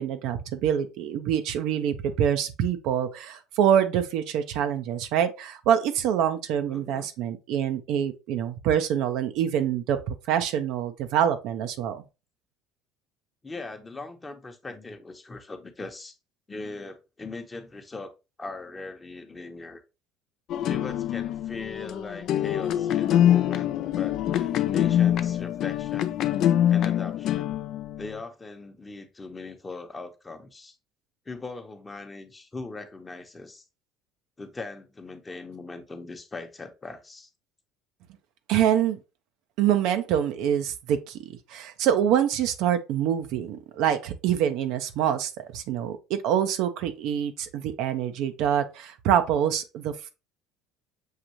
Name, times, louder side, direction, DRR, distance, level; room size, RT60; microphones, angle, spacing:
voice 1, 0.0-12.0 38.5-39.0 39.6-50.1, right 9 dB, 70° right, 0.5 m, -25 dB
voice 2, 6.7-7.1 13.4-16.1 16.5-19.8 20.7-26.2 26.7-27.6 28.0-30.8 31.3-33.6 34.4-37.3, left 3 dB, 20° left, 0.8 m, -40 dB
sound 1, 20.5-28.2, left 11 dB, 60° left, 0.4 m, -24 dB
6.5 x 2.5 x 2.9 m
supercardioid pair, 85°, 0 cm